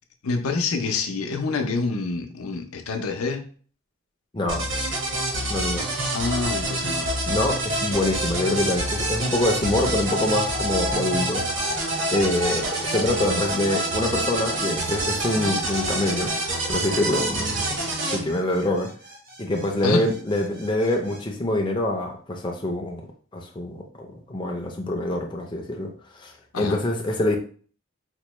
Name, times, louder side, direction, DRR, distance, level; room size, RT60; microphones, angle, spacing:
voice 1, 0.2-3.4 6.1-7.1 19.8-20.0 26.5-26.8, left 3 dB, 90° left, 0.6 m, -26 dB
voice 2, 4.3-4.7 5.5-5.8 7.3-11.4 12.1-18.9 19.4-23.1 23.3-27.4, left 1 dB, 20° left, 0.5 m, -25 dB
sound 1, 4.5-18.2, right 1 dB, 60° right, 1.1 m, -27 dB
sound 2, 10.1-21.2, left 1 dB, 40° right, 0.8 m, -36 dB
4.3 x 2.1 x 3.0 m
head